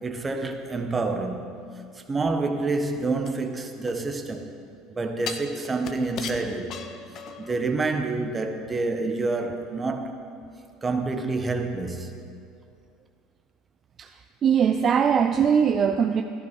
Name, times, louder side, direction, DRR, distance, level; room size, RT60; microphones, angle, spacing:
voice 1, 0.0-1.5 1.9-4.5 4.9-6.8 7.4-10.2 10.8-12.1, right 3 dB, 20° right, 1.4 m, -28 dB
sound 1, 3.2-4.4 5.3-7.6 8.0-8.1, left 7 dB, 50° left, 1.1 m, -37 dB
voice 2, 14.0-16.2, right 7 dB, 40° right, 0.5 m, -21 dB
14.0 x 11.5 x 5.4 m
supercardioid pair, 100°, 0 cm